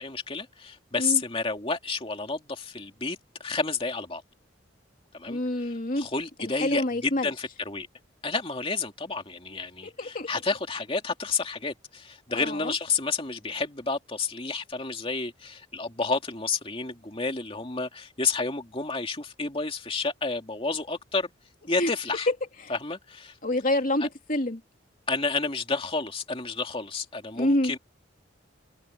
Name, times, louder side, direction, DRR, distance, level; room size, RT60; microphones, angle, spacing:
voice 1, 0.0-4.2 5.1-7.9 8.2-21.3 21.7-22.3 22.7-23.3 25.1-27.8, left 4 dB, 30° left, 2.5 m, -30 dB
voice 2, 5.3-6.1 6.4-7.3 9.8-10.3 12.3-12.7 21.8-21.9 22.6-22.7 23.4-24.6 27.4-27.7, left 1 dB, 45° left, 2.6 m, -27 dB
head